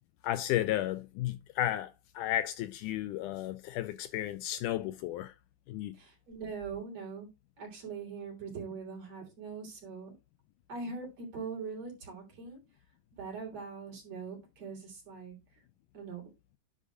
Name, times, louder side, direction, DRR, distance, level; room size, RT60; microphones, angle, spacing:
voice 1, 0.2-5.3 5.7-6.0, left 13 dB, 80° left, 2.0 m, -33 dB
voice 2, 5.9-7.3 7.6-10.1 10.7-12.6 13.1-15.6 15.9-16.3, right 5 dB, 50° right, 4.4 m, -42 dB
10.0 x 3.9 x 4.9 m
omnidirectional pair, 3.9 m